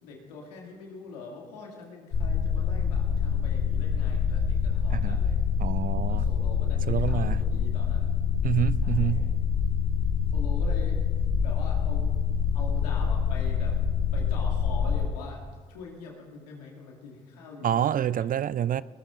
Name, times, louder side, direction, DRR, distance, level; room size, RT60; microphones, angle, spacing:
voice 1, 0.0-5.4 6.0-8.1 8.8-9.3 10.3-11.0 11.4-12.2 12.5-13.8 14.1-15.4 15.7-18.3, left 4 dB, 90° left, 2.3 m, -43 dB
sound 1, 2.1-15.1, left 7 dB, 70° left, 3.6 m, -26 dB
voice 2, 5.6-6.3 6.9-7.4 8.4-9.3 17.6-18.8, right 10 dB, 45° right, 0.4 m, -27 dB
20.5 x 20.5 x 2.5 m
hypercardioid pair, 45°, 20 cm